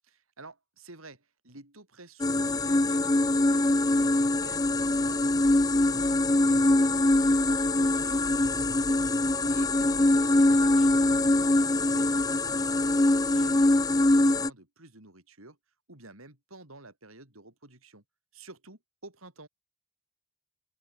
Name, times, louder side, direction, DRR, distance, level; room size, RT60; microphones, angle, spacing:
voice 1, 0.1-8.5 9.3-15.6 15.9-18.0 18.3-19.5, right 2 dB, 90° right, 7.1 m, -51 dB
sound 1, 2.2-14.5, left 2 dB, 20° left, 0.6 m, -23 dB
open air
head